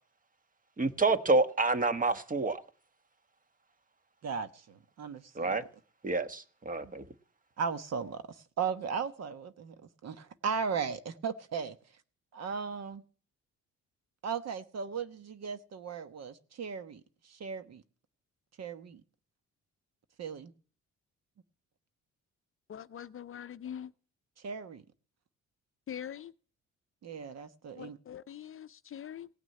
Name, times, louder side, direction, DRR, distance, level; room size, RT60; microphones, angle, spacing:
voice 1, 0.8-2.6 5.4-5.6 6.0-7.0, right 3 dB, 25° right, 1.3 m, -28 dB
voice 2, 4.2-5.7 6.8-6.9 7.6-9.8 10.0-11.8 12.3-13.0 14.2-17.8 18.6-19.0 20.2-20.5 24.4-24.8 27.0-28.0, right 6 dB, 60° right, 1.2 m, -37 dB
voice 3, 22.7-23.9 25.9-26.3 27.8-29.3, left 9 dB, 45° left, 0.6 m, -43 dB
17.5 x 6.2 x 9.6 m
cardioid pair, 90°, 30 cm